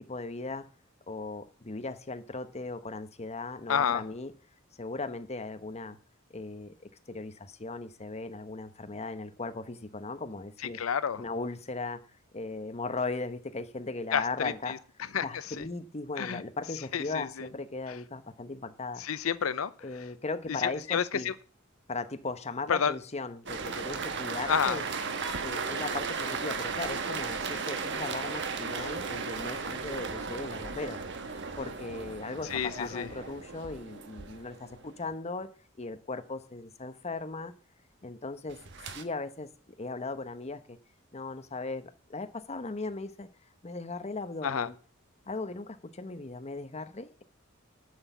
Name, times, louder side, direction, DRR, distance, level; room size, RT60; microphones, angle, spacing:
voice 1, 0.1-0.7 1.1-4.3 4.8-6.0 6.3-6.7 7.1-10.8 11.2-12.0 12.3-14.8 15.1-19.0 19.8-21.3 21.9-24.8 25.4-35.5 35.8-37.5 38.0-38.6 38.9-39.5 39.8-40.8 41.1-43.3 43.6-44.8 45.3-47.2, left 3 dB, 30° left, 0.9 m, -37 dB
voice 2, 3.7-4.0 10.7-11.2 14.1-14.8 15.1-15.6 16.2-16.4 16.9-17.5 19.0-19.7 20.6-21.3 22.7-22.9 24.5-24.8 32.5-33.1 44.4-44.7, left 7 dB, 85° left, 0.6 m, -29 dB
sound 1, 23.5-35.0 38.5-39.0, right 5 dB, 60° right, 1.2 m, -36 dB
9.6 x 6.4 x 8.1 m
head